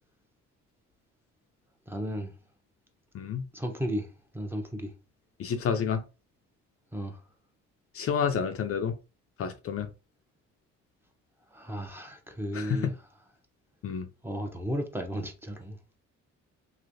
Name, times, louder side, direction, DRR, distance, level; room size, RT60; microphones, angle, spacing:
voice 1, 1.9-2.3 3.5-4.9 6.9-7.2 11.5-12.9 14.2-15.8, equal, 5° right, 0.7 m, -34 dB
voice 2, 3.1-3.5 5.4-6.0 7.9-8.9 9.4-9.9 12.5-12.9 13.8-14.1, left 7 dB, 50° left, 0.4 m, -29 dB
3.1 x 2.6 x 2.5 m
cardioid pair, 90°, 30 cm